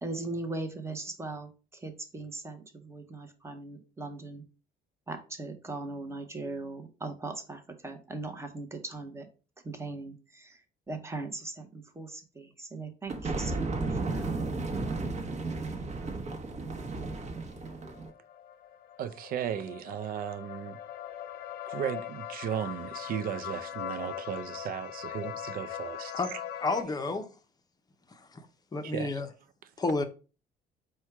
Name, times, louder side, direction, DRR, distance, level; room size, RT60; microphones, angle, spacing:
voice 1, 0.0-4.4 5.1-9.3 9.6-10.6 10.9-14.3, right 2 dB, 15° right, 0.8 m, -39 dB
sound 1, 13.1-18.1, right 3 dB, 40° right, 1.0 m, -33 dB
sound 2, 17.5-26.8, left 11 dB, 70° left, 0.5 m, -41 dB
voice 2, 19.0-20.8 21.7-26.4 28.8-29.2, right 9 dB, 60° right, 0.5 m, -36 dB
voice 3, 26.6-27.3 28.7-29.3 29.8-30.0, left 3 dB, 25° left, 0.6 m, -30 dB
4.4 x 2.2 x 4.6 m
cardioid pair, 110°, 17 cm